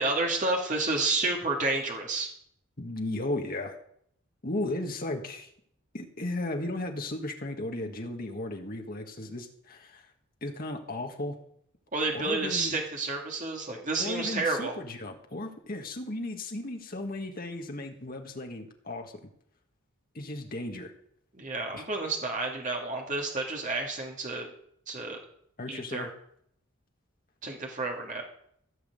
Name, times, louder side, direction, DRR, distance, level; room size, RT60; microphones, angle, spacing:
voice 1, 0.0-2.3 11.9-14.7 21.3-24.5 24.9-25.2 25.7-26.1 27.4-28.2, right 3 dB, 35° right, 1 dB, 2.4 m, -30 dB
voice 2, 2.8-3.8 4.4-5.5 5.9-10.1 10.4-11.4 12.1-12.7 14.0-19.1 20.1-20.9 21.7-21.8 25.6-26.1, left 2 dB, 45° left, 3 dB, 1.7 m, -35 dB
16.0 x 6.2 x 7.8 m, 0.68 s
head